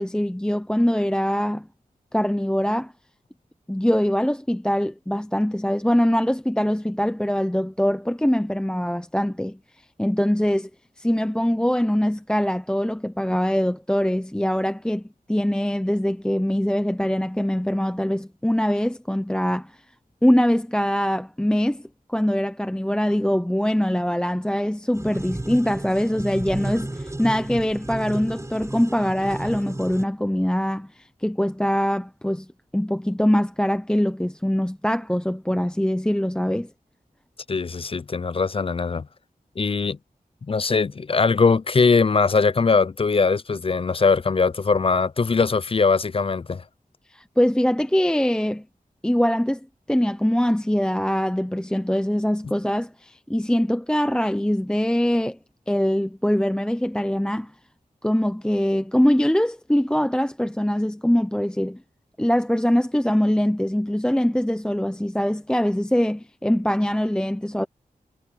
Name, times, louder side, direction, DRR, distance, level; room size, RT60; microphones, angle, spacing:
voice 1, 0.0-1.7 2.1-2.9 3.7-9.6 10.0-10.7 11.0-19.8 20.2-21.8 22.1-32.5 32.7-36.7 47.1-48.6 49.0-49.6 49.9-55.4 55.7-57.5 58.0-61.8 62.2-67.7, equal, 5° left, 0.8 m, -23 dB
sound 1, 24.9-30.0, right 1 dB, 20° right, 3.9 m, -33 dB
voice 2, 37.5-39.1 39.6-40.0 40.5-46.6, left 4 dB, 40° left, 0.4 m, -21 dB
wide cardioid pair, 80°, 15 cm